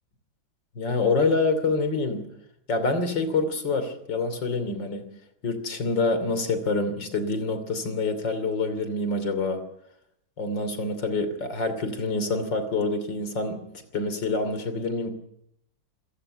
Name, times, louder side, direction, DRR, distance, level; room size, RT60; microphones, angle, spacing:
voice 1, 0.8-2.3 2.7-5.1 5.4-9.6 10.4-13.6 13.9-15.1, left 3 dB, 60° left, 11 dB, 3.6 m, -26 dB
27.0 x 15.5 x 8.8 m, 0.74 s
omnidirectional pair, 2.2 m